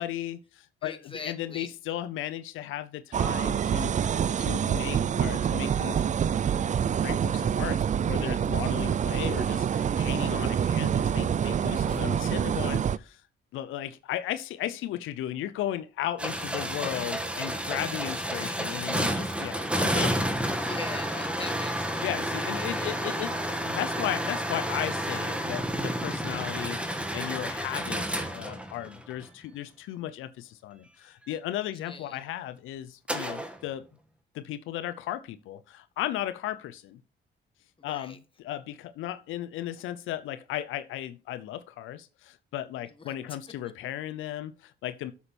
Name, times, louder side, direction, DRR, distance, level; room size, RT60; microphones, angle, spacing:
voice 1, 0.0-6.1 7.0-13.2 13.5-20.1 22.0-23.4 23.6-33.8 34.3-37.0 37.8-45.1, left 12 dB, 85° left, 0.6 m, -35 dB
voice 2, 0.8-1.7 11.9-12.4 20.6-22.1 22.5-23.5 31.9-32.2 37.8-38.2 43.0-43.1, left 4 dB, 25° left, 1.7 m, -42 dB
sound 1, 3.1-13.0, right 8 dB, 40° right, 0.4 m, -26 dB
sound 2, 16.2-29.2 33.1-33.6, equal, 5° right, 1.7 m, -30 dB
8.6 x 7.0 x 4.3 m
cardioid pair, 90°, 20 cm